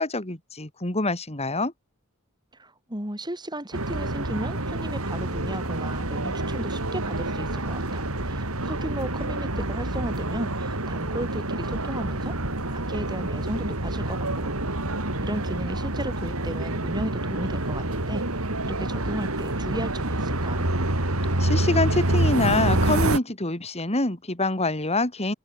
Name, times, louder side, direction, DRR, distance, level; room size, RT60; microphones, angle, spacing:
voice 1, 0.0-1.7 21.4-25.3, left 2 dB, 30° left, 3.3 m, -25 dB
voice 2, 2.5-12.4 12.7-14.5 15.2-18.3 18.7-20.7, right 1 dB, 20° right, 7.5 m, -35 dB
sound 1, 3.7-23.2, right 1 dB, 80° right, 4.4 m, -27 dB
head